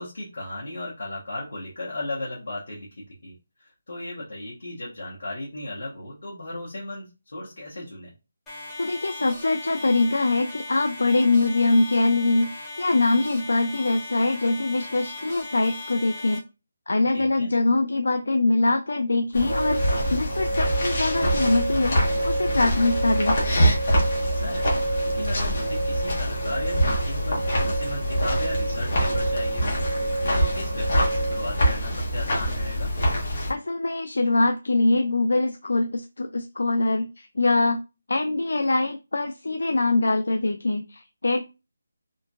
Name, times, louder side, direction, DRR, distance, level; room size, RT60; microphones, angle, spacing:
voice 1, 0.0-8.1 17.1-17.5 24.2-29.8 30.2-32.9, left 1 dB, 50° left, -5 dB, 1.1 m, -36 dB
sound 1, 8.5-16.4, left 2 dB, 5° left, 0.6 m, -38 dB
voice 2, 8.8-16.4 16.9-22.0 22.2-23.4 33.5-37.8 38.1-41.5, left 2 dB, 80° left, 6 dB, 0.3 m, -23 dB
sound 2, 19.3-33.5, equal, 35° left, 1.1 m, -25 dB
sound 3, 19.5-31.7, right 2 dB, 40° right, 0.4 m, -30 dB
2.9 x 2.5 x 2.4 m, 0.29 s
hypercardioid pair, 180°, 0 cm